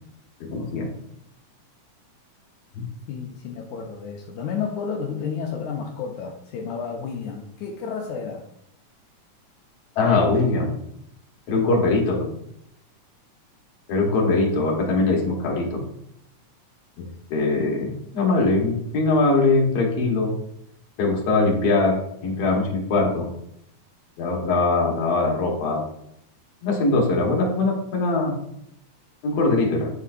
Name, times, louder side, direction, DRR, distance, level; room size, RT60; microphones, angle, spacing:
voice 1, 0.4-0.9 2.7-2.9 10.0-10.8 11.5-12.3 13.9-15.8 17.3-20.3 21.0-23.3 24.2-25.8 26.6-28.4 29.2-29.9, left 3 dB, 60° left, -1 dB, 2.4 m, -21 dB
voice 2, 3.1-8.4, left 6 dB, 80° left, 0 dB, 2.1 m, -31 dB
8.4 x 6.0 x 2.6 m, 0.75 s
omnidirectional pair, 3.4 m